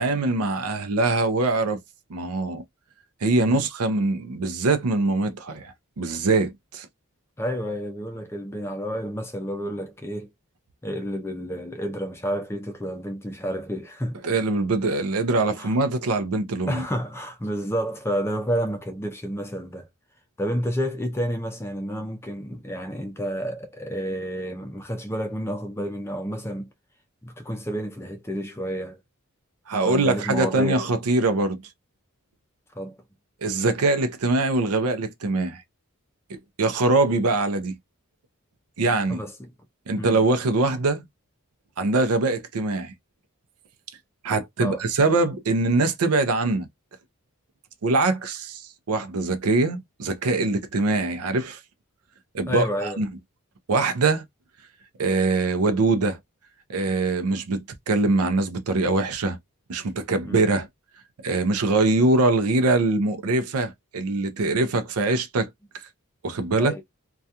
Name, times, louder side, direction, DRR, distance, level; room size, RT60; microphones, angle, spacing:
voice 1, 0.0-1.8 2.1-2.6 3.2-6.9 14.2-16.8 29.7-31.6 33.4-35.6 36.3-37.7 38.8-39.2 39.9-41.0 41.8-42.9 44.2-46.7 47.8-51.6 52.3-53.1 53.7-54.2 55.0-56.2 56.7-59.4 59.7-60.7 61.2-65.5 66.2-66.7, right 3 dB, 85° right, 0.5 m, -23 dB
voice 2, 7.4-10.3 10.8-14.2 15.6-15.7 16.7-19.9 20.4-26.7 27.2-29.0 29.9-30.8 32.7-33.0 39.1-39.5 40.0-40.2 44.6-44.8 52.5-53.0 60.2-60.4 66.6-66.8, equal, 10° left, 0.4 m, -30 dB
2.3 x 2.2 x 2.7 m
head